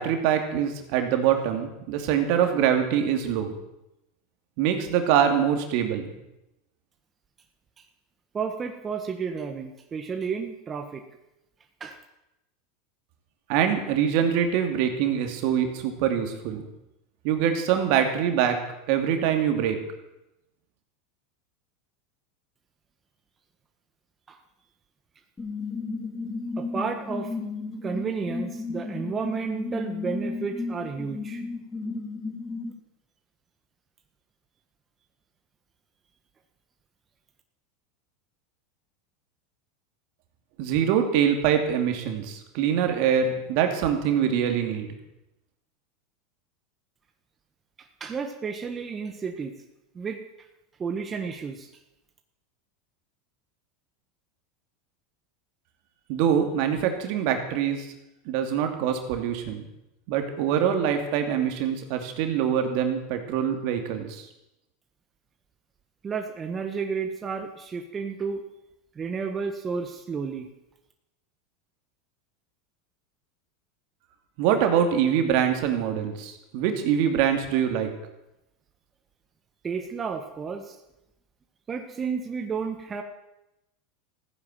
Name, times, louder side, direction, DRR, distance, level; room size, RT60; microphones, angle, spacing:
voice 1, 0.0-3.5 4.6-6.0 13.5-16.6 17.2-18.6 18.9-19.8 40.6-44.9 56.1-57.9 58.3-59.6 60.1-64.3 74.4-77.9, right 8 dB, 60° right, 5 dB, 2.6 m, -24 dB
voice 2, 8.3-11.0 11.8-12.0 24.3-24.4 26.6-27.3 27.8-31.4 47.8-49.5 49.9-50.2 50.8-51.7 66.0-68.4 68.9-70.5 79.6-80.8 81.7-83.0, right 5 dB, 25° right, 5 dB, 1.5 m, -32 dB
sound 1, 25.4-32.7, left 3 dB, 15° left, 3.7 m, -33 dB
15.0 x 9.9 x 7.7 m, 0.91 s
hypercardioid pair, 100°, 0 cm